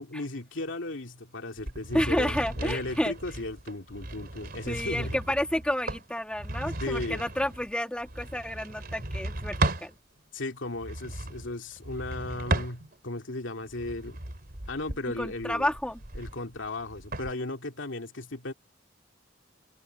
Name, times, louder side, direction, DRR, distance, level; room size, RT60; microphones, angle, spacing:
voice 1, 0.0-5.2 6.8-7.2 9.0-9.1 10.3-14.2 14.7-15.7 16.2-18.5, left 2 dB, 85° left, 2.5 m, -35 dB
sound 1, 1.6-9.9 10.7-13.2 13.7-17.3, right 2 dB, 55° right, 3.3 m, -36 dB
voice 2, 1.9-3.1 4.7-9.9 15.2-16.0, left 1 dB, 5° left, 2.5 m, -30 dB
head